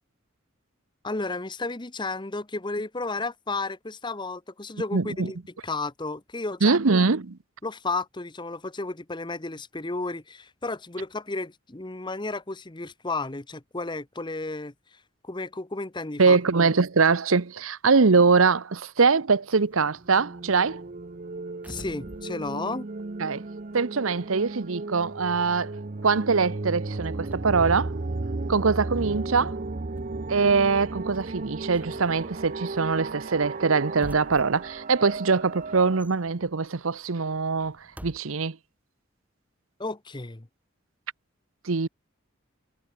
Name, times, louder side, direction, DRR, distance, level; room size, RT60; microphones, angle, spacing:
voice 1, 1.0-5.4 5.6-6.8 7.6-16.4 21.7-22.9 39.8-40.5, left 3 dB, 20° left, 0.9 m, -33 dB
voice 2, 4.9-5.3 6.6-7.4 16.2-20.8 23.2-23.4 23.7-25.7 26.0-27.9 28.5-29.6 30.3-37.8 38.0-38.6 41.6-41.9, right 4 dB, 75° right, 0.9 m, -23 dB
sound 1, 19.6-24.0 24.3-38.2, equal, 5° right, 3.2 m, -50 dB
sound 2, 19.9-36.0, right 3 dB, 40° right, 0.7 m, -35 dB
head